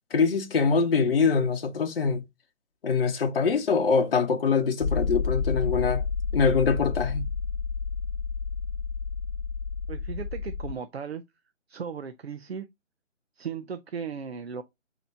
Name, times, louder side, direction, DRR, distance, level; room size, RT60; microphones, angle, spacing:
voice 1, 0.1-2.2 2.8-6.0 6.3-7.3, left 5 dB, 50° left, 0.8 m, -24 dB
sound 1, 4.8-10.7, left 5 dB, 90° left, 0.5 m, -30 dB
voice 2, 9.9-11.2 11.7-12.7 13.4-14.6, right 6 dB, 55° right, 0.6 m, -36 dB
4.1 x 2.8 x 4.4 m
figure-of-eight pair, 160°, 38 cm